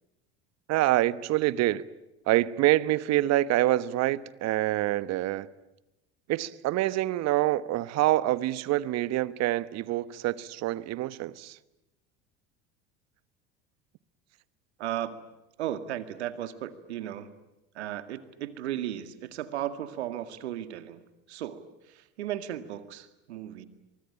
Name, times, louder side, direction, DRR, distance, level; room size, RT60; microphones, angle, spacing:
voice 1, 0.7-1.9 2.3-5.5 6.3-11.6, right 15 dB, 50° right, 1.2 m, -26 dB
voice 2, 14.8-15.2 15.6-17.3 17.7-23.7, right 12 dB, 80° right, 2.1 m, -35 dB
24.0 x 24.0 x 10.0 m
hypercardioid pair, 85°, 33 cm